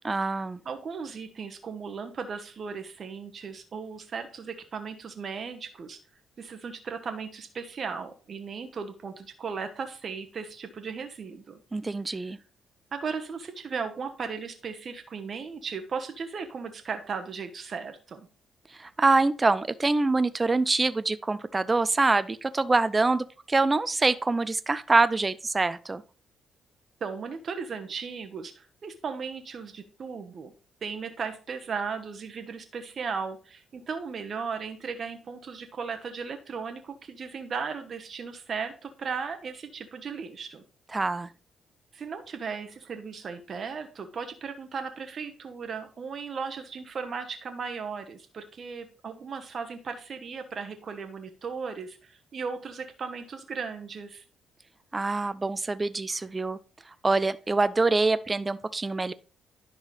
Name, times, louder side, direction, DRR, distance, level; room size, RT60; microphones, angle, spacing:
voice 1, 0.0-0.6 11.7-12.4 18.8-26.0 40.9-41.3 54.9-56.6 57.0-59.1, right 3 dB, 30° right, 0.6 m, -25 dB
voice 2, 0.6-6.0 6.4-11.6 12.9-18.3 27.0-30.5 30.8-40.6 41.9-54.2, right 5 dB, 50° right, 1.1 m, -36 dB
10.5 x 5.6 x 3.1 m
hypercardioid pair, 45°, 0 cm